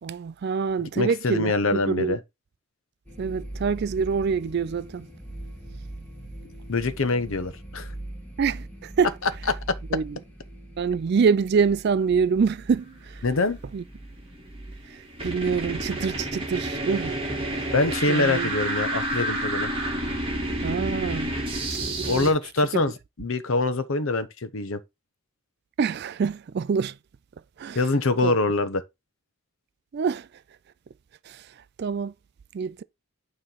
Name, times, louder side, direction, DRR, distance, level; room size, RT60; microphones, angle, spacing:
voice 1, 0.0-2.2 3.2-5.1 8.4-9.1 9.9-10.2 10.8-13.2 13.7-13.8 14.9-17.2 18.1-18.5 20.6-21.3 21.7-21.8 22.7-22.8 25.8-27.0 27.6-27.8 28.2-28.3 29.9-30.3 31.3-31.5 31.8-32.1 32.5-32.8, right 5 dB, 50° right, 0.3 m, -25 dB
voice 2, 1.0-2.2 6.7-7.9 13.2-13.6 17.7-19.7 22.1-22.9 23.2-24.8 27.7-28.8, left 3 dB, 65° left, 0.8 m, -24 dB
sound 1, 3.1-14.8, right 1 dB, 5° left, 2.1 m, -41 dB
sound 2, 14.2-22.3, right 1 dB, 25° right, 2.0 m, -29 dB
9.2 x 3.2 x 5.6 m
head